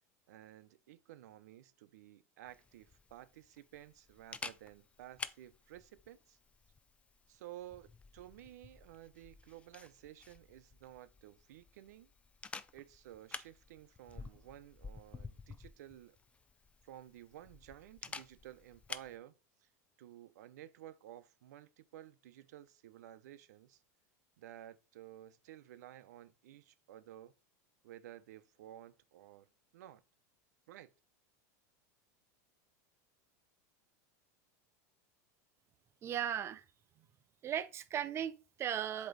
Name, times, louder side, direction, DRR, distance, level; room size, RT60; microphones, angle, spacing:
voice 1, 0.3-6.4 7.3-12.1 12.7-16.2 16.8-19.3 19.6-19.7 20.0-23.8 24.4-27.3 27.8-30.0 30.7-30.9, right 13 dB, 80° right, 0.7 m, -54 dB
Camera, 2.5-19.2, left 4 dB, 15° left, 0.4 m, -51 dB
voice 2, 36.0-36.6 37.4-39.1, right 9 dB, 30° right, 0.6 m, -37 dB
7.8 x 3.0 x 4.0 m
supercardioid pair, 125°, 9 cm